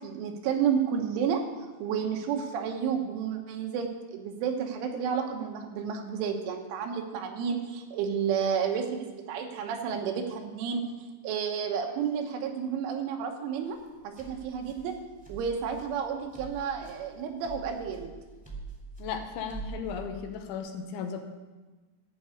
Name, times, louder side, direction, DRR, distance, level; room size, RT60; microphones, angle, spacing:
voice 1, 0.0-1.4 1.8-10.8 11.2-13.8 14.0-15.0 15.3-18.1, right 7 dB, 85° right, 4 dB, 3.6 m, -31 dB
sound 1, 13.6-20.6, right 4 dB, 5° left, 1.6 m, -45 dB
voice 2, 19.0-21.2, left 7 dB, 85° left, 5 dB, 3.3 m, -36 dB
13.0 x 5.4 x 8.3 m, 1.3 s
omnidirectional pair, 5.5 m